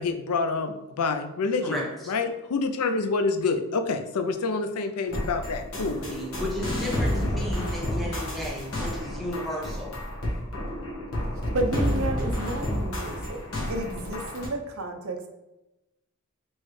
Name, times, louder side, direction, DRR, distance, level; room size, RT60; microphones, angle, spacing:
voice 1, 0.0-1.8 2.1-6.0, left 4 dB, 85° left, 9 dB, 0.4 m, -27 dB
voice 2, 1.6-2.1 6.0-9.9, left 1 dB, ahead, -3 dB, 0.8 m, -34 dB
sound 1, 5.1-14.5, left 1 dB, 65° left, 1.2 m, -30 dB
voice 3, 11.5-13.4 13.7-15.3, right 1 dB, 70° right, 4 dB, 0.6 m, -31 dB
4.5 x 3.1 x 3.1 m, 0.96 s
head